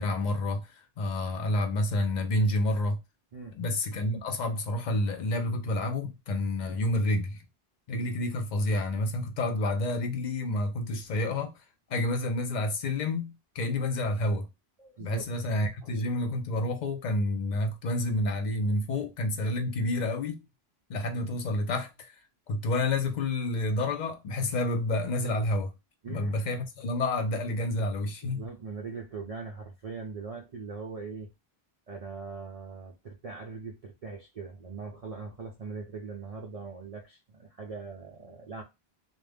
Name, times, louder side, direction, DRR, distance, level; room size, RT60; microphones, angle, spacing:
voice 1, 0.0-3.0 3.5-7.4 7.9-11.5 11.9-14.5 15.0-20.4 20.9-22.1 22.5-25.7 26.1-28.4, left 1 dB, 55° left, 0.6 m, -29 dB
voice 2, 3.3-3.8 14.8-15.2 15.8-15.9 26.0-26.4 28.2-31.3 31.9-38.6, right 4 dB, 55° right, 0.4 m, -41 dB
2.4 x 2.1 x 3.3 m
omnidirectional pair, 1.1 m